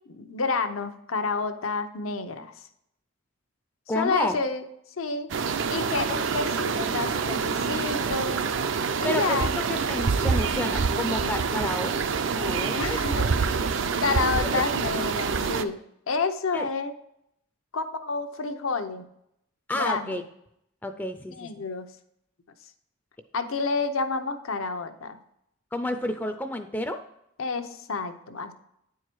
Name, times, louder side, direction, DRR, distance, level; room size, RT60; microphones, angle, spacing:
voice 1, 0.1-2.7 3.9-4.6 5.0-5.3 5.7-8.4 9.0-9.5 12.7-13.3 14.0-15.8 16.1-16.9 17.7-19.0 19.7-20.2 21.3-21.9 23.3-25.2 27.4-28.5, left 4 dB, 85° left, 8 dB, 0.8 m, -29 dB
voice 2, 3.9-4.4 9.0-11.9 12.3-13.0 14.4-14.6 16.5-16.7 19.7-20.2 20.8-21.5 25.7-27.0, left 1 dB, 10° left, 7 dB, 0.4 m, -30 dB
sound 1, 5.3-15.6, right 5 dB, 65° right, 0.5 m, -26 dB
9.4 x 4.7 x 4.6 m, 0.76 s
head